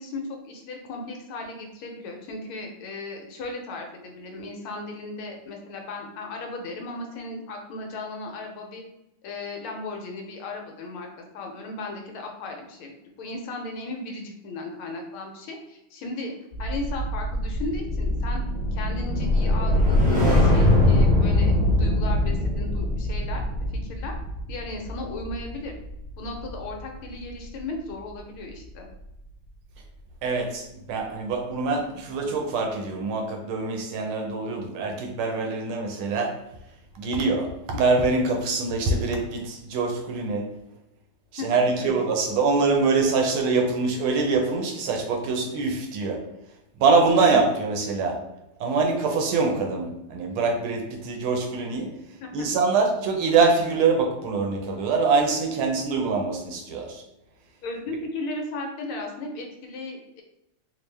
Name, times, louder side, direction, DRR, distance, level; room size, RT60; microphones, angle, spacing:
voice 1, 0.0-8.8 9.2-11.1 11.3-16.3 16.6-18.4 18.7-23.4 23.7-24.1 24.5-25.8 26.2-28.9 41.4-41.9 47.1-47.4 52.2-52.5 57.6-60.2, left 2 dB, 75° left, 2 dB, 1.5 m, -36 dB
sound 1, 16.5-26.9 27.3-27.6, left 1 dB, 5° right, 0.7 m, -23 dB
voice 2, 30.2-36.4 36.9-40.6 41.3-46.2 46.8-48.2 48.6-51.9 52.3-57.0, right 4 dB, 75° right, 3 dB, 1.4 m, -24 dB
4.3 x 2.4 x 3.2 m, 0.86 s
omnidirectional pair, 2.4 m